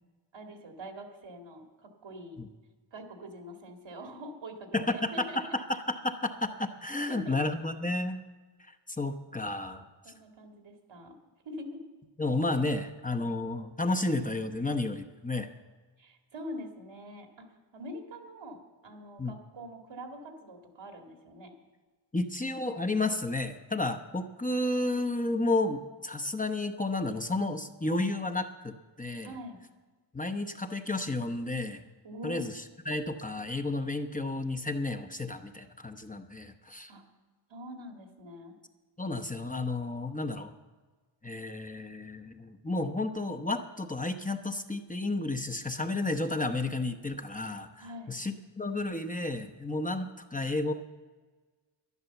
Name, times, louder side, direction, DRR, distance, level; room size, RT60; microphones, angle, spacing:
voice 1, 0.3-2.4 2.9-5.6 7.1-7.4 10.0-11.1 11.4-11.8 16.0-17.5 17.7-21.6 29.2-29.6 32.0-32.4 36.9-37.0 37.5-38.6 47.8-48.2, equal, 85° right, 4 dB, 2.1 m, -44 dB
voice 2, 4.7-8.2 8.7-9.8 12.2-15.5 19.2-19.3 22.1-29.3 30.1-31.8 32.2-36.9 39.0-40.5 41.2-50.7, left 2 dB, 20° left, 5 dB, 0.8 m, -32 dB
11.0 x 11.0 x 7.0 m, 1.3 s
wide cardioid pair, 90°, 45 cm